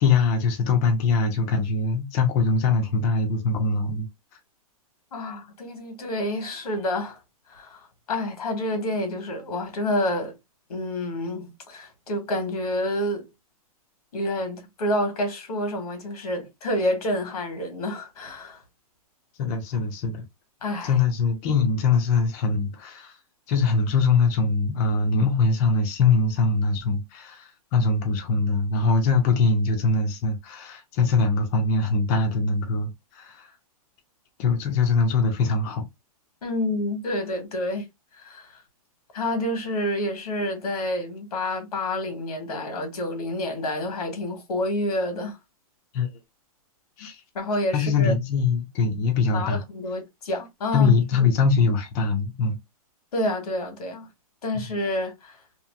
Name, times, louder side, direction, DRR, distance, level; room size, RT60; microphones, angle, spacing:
voice 1, 0.0-4.1 19.4-20.2 20.8-23.2 23.5-33.5 34.4-35.9 45.9-46.1 47.0-47.2 47.7-49.6 50.7-52.6, left 4 dB, 25° left, 0.5 m, -22 dB
voice 2, 5.1-7.2 7.5-10.3 10.7-13.3 14.1-18.6 20.6-20.9 36.4-37.9 38.2-38.5 39.1-45.4 47.3-48.1 49.3-51.0 53.1-54.1 54.4-55.4, left 1 dB, 85° left, 1.4 m, -28 dB
2.9 x 2.5 x 2.4 m
hypercardioid pair, 165°, 19 cm